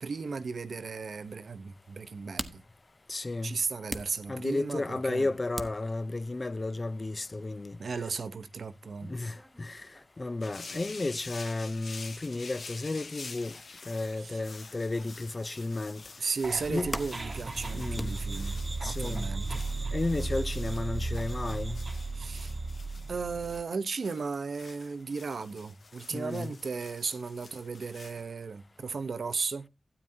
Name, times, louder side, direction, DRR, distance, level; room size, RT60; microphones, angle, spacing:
voice 1, 0.0-2.6 3.4-5.3 7.8-9.1 14.2-14.4 16.2-19.6 22.1-22.5 23.1-29.7, right 4 dB, 75° right, 1.0 m, -35 dB
sound 1, 2.3-19.2, equal, ahead, 1.1 m, -47 dB
voice 2, 3.1-3.5 4.3-7.8 9.0-9.9 10.2-13.6 13.9-16.0 16.7-16.9 17.7-18.1 18.8-19.3 19.9-21.8 26.1-26.5, left 2 dB, 40° left, 0.5 m, -33 dB
sound 2, 10.4-28.3, left 4 dB, 75° left, 1.6 m, -48 dB
sound 3, 16.4-23.6, right 3 dB, 40° right, 1.1 m, -35 dB
12.5 x 9.1 x 2.8 m
cardioid pair, 60°, 0 cm